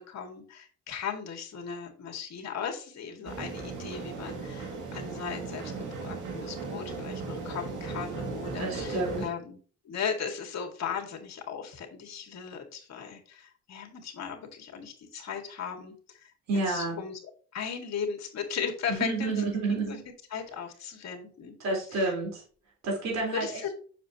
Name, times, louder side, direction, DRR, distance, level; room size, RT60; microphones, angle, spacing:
voice 1, 0.0-9.6 9.8-16.3 16.7-17.2 17.5-20.0 20.3-21.5 22.0-22.1 23.3-23.7, left 7 dB, 60° left, 3 dB, 2.0 m, -37 dB
sound 1, 3.2-9.3, right 4 dB, 90° right, 2.1 m, -37 dB
voice 2, 8.6-9.3 16.5-17.0 18.9-20.0 21.6-22.4 22.8-23.6, right 3 dB, 60° right, -2 dB, 4.0 m, -29 dB
7.3 x 6.5 x 2.9 m, 0.42 s
cardioid pair, 90°, 30 cm